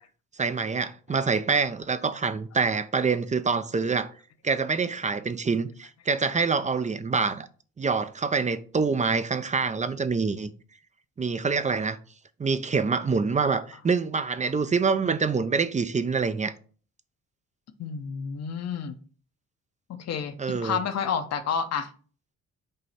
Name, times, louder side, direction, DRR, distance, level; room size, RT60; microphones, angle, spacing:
voice 1, 0.4-4.1 4.4-7.5 7.8-10.5 11.2-12.0 12.4-16.5 20.4-20.8, right 4 dB, 25° right, 0.5 m, -26 dB
voice 2, 17.8-19.0 19.9-21.9, left 6 dB, 55° left, 0.9 m, -30 dB
5.5 x 3.1 x 5.6 m
cardioid pair, 90°, 30 cm